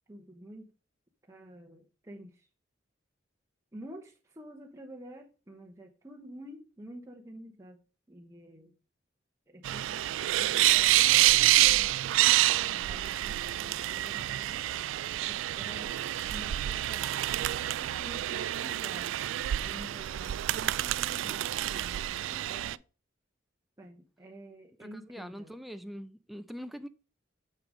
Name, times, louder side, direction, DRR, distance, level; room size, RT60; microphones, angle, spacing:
voice 1, 0.1-0.7 1.3-2.5 3.7-7.8 8.1-8.7 9.5-11.9 12.5-14.7 15.2-15.9 16.3-19.2 19.6-22.8 23.8-25.6, right 1 dB, 15° right, 0.9 m, -49 dB
sound 1, 9.6-22.8, right 15 dB, 80° right, 0.3 m, -27 dB
voice 2, 24.8-26.9, equal, ahead, 0.5 m, -43 dB
6.7 x 6.6 x 5.0 m
head